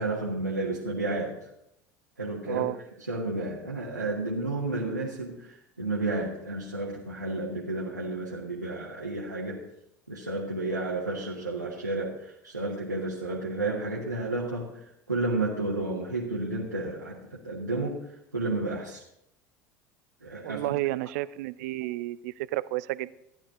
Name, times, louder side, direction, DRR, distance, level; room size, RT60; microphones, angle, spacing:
voice 1, 0.0-1.5 2.2-2.6 3.0-9.6 10.1-19.0 20.2-20.7 21.0-21.1, right 2 dB, 90° right, -5 dB, 1.2 m, -32 dB
voice 2, 2.4-2.8 20.4-23.2, right 17 dB, 60° right, 18 dB, 0.4 m, -31 dB
13.5 x 10.5 x 3.7 m, 0.84 s
figure-of-eight pair, 70°, 9 cm